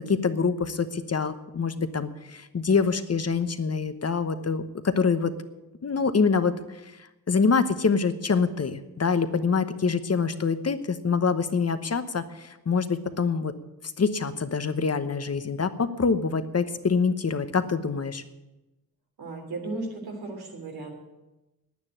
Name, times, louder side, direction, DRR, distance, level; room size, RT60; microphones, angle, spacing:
voice 1, 0.0-5.3 5.8-6.6 7.3-13.5 14.0-18.2, left 5 dB, 40° left, 11 dB, 1.0 m, -25 dB
voice 2, 19.2-20.9, right 2 dB, 85° right, 1 dB, 3.5 m, -35 dB
9.6 x 9.5 x 10.0 m, 1.0 s
cardioid pair, 65°, 36 cm